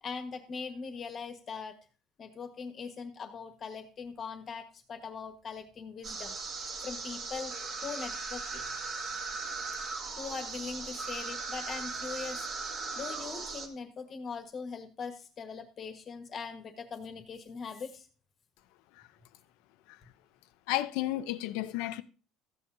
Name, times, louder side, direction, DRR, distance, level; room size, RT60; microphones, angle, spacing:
voice 1, 0.0-1.7 2.2-7.5 7.8-8.6 10.2-12.5 12.9-18.1, left 5 dB, 30° left, 1.5 m, -41 dB
sound 1, 6.0-13.7, right 4 dB, 40° right, 1.9 m, -38 dB
voice 2, 20.7-22.0, left 15 dB, 80° left, 0.7 m, -32 dB
14.0 x 8.7 x 2.8 m
cardioid pair, 165°, 0 cm